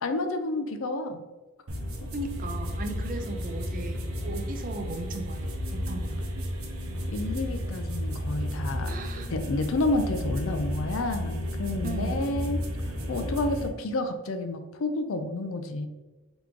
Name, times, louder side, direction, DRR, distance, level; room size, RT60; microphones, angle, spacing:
voice 1, 0.0-1.2 7.1-9.0 9.3-12.6 13.1-15.9, left 2 dB, 65° left, 7 dB, 0.4 m, -30 dB
sound 1, 1.7-13.7, equal, 75° right, 0.7 m, -33 dB
voice 2, 2.1-5.4 5.7-6.2 8.9-9.3 11.8-12.2, right 2 dB, 40° right, 6 dB, 0.4 m, -36 dB
3.7 x 3.0 x 3.6 m, 1.2 s
head